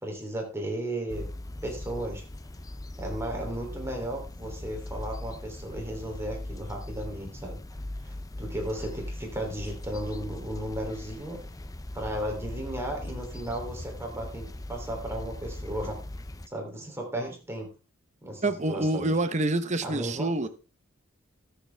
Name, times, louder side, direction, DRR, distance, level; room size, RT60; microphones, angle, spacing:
voice 1, 0.0-1.3 1.6-2.2 3.0-7.6 8.0-11.4 11.9-16.0 16.5-17.7 18.2-19.1 19.8-20.5, right 1 dB, 10° right, 3.2 m, -35 dB
sound 1, 1.1-16.5, left 1 dB, 15° left, 0.5 m, -39 dB
voice 2, 18.4-20.5, right 2 dB, 35° right, 1.0 m, -27 dB
20.5 x 6.9 x 3.5 m
head